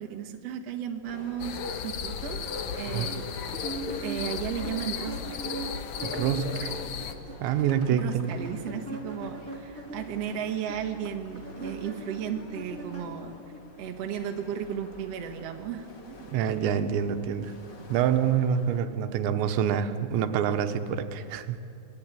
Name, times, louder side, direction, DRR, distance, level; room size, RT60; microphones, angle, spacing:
voice 1, 0.0-2.4 2.7-3.2 4.0-5.4 7.9-13.3 13.8-15.9, right 9 dB, 55° right, 3 dB, 1.8 m, -34 dB
sound 1, 1.0-18.8, left 2 dB, 40° left, 1.5 m, -49 dB
sound 2, 1.4-7.1, left 6 dB, 85° left, 1.6 m, -34 dB
sound 3, 3.5-6.6 6.9-13.6, right 2 dB, 35° right, 1.1 m, -41 dB
voice 2, 6.0-6.7 7.4-8.3 16.2-17.5 17.9-21.6, right 8 dB, 85° right, 8 dB, 3.3 m, -26 dB
25.0 x 19.5 x 9.1 m, 2.4 s
omnidirectional pair, 5.1 m